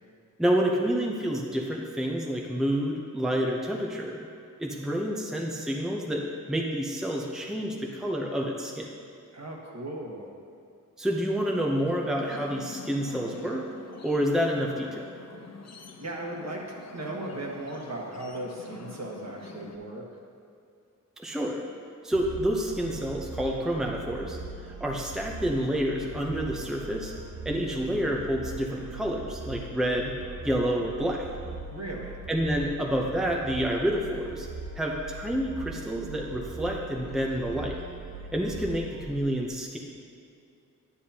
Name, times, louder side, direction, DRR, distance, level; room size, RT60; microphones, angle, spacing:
voice 1, 0.4-4.2 4.6-6.2 6.5-8.9 11.0-13.6 14.0-15.0 21.2-21.6 22.0-24.4 24.8-27.1 27.4-30.1 30.4-31.2 32.3-34.5 34.8-37.8 38.3-39.8, equal, ahead, -1 dB, 0.7 m, -28 dB
voice 2, 9.3-10.3 15.7-20.0 31.7-32.2, right 1 dB, 55° right, -2 dB, 1.4 m, -37 dB
sound 1, 11.9-19.8, left 4 dB, 55° left, 0.6 m, -46 dB
sound 2, 22.1-39.2, right 3 dB, 85° right, 0.7 m, -41 dB
9.7 x 9.5 x 2.9 m, 2.5 s
wide cardioid pair, 105°, 33 cm